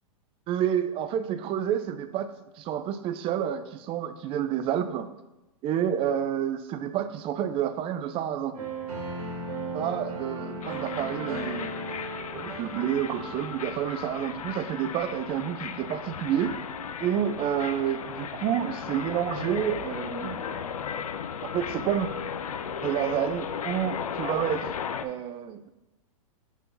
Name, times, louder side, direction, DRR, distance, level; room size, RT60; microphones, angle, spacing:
voice 1, 0.5-2.3 2.6-5.1 5.6-8.6 9.7-11.7 12.3-16.5 17.0-20.7 21.4-22.1 22.8-24.7 25.0-25.7, right 10 dB, 30° right, 11 dB, 0.5 m, -29 dB
sound 1, 8.5-13.6, right 2 dB, 80° right, 2.1 m, -36 dB
sound 2, 10.6-25.1, left 7 dB, 90° left, 0.5 m, -36 dB
6.2 x 3.8 x 5.4 m, 0.97 s
hypercardioid pair, 115°, 18 cm